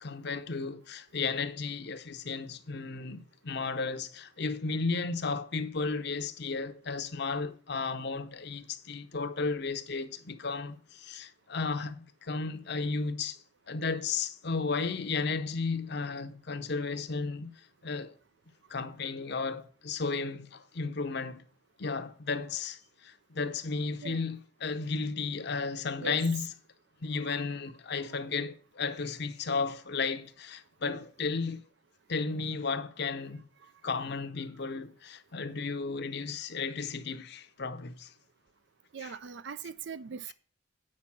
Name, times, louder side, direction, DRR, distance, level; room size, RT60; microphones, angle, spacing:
voice 1, 0.0-13.4 13.7-18.1 18.7-21.5 21.8-26.5 27.0-31.6 32.1-33.4 33.8-38.1 39.0-39.1, left 4 dB, 55° left, 0.7 m, -34 dB
voice 2, 38.9-40.3, right 5 dB, 60° right, 0.4 m, -40 dB
8.7 x 5.3 x 5.9 m
head